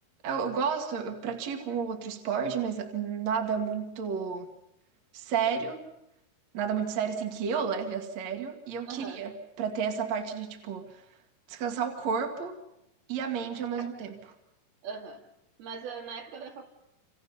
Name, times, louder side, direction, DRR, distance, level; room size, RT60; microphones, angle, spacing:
voice 1, 0.2-4.5 5.1-5.9 6.5-9.3 9.6-11.0 11.5-12.6 13.1-14.1, right 6 dB, 50° right, 4 dB, 2.9 m, -31 dB
voice 2, 8.9-9.3 13.7-13.9 14.8-15.3 15.6-16.6, right 5 dB, 75° right, 2 dB, 4.3 m, -40 dB
28.5 x 27.5 x 5.5 m, 0.87 s
omnidirectional pair, 4.6 m